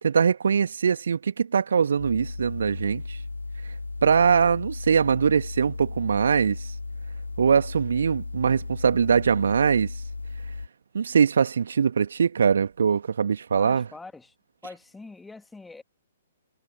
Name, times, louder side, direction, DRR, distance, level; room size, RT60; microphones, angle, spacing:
voice 1, 0.0-3.2 4.0-6.7 7.4-9.9 10.9-13.9, right 6 dB, 60° right, 2.1 m, -22 dB
sound 1, 2.0-10.7, left 3 dB, 75° left, 3.3 m, -35 dB
voice 2, 13.5-14.3 14.6-15.8, left 3 dB, 5° left, 2.3 m, -43 dB
figure-of-eight pair, 120°, 0 cm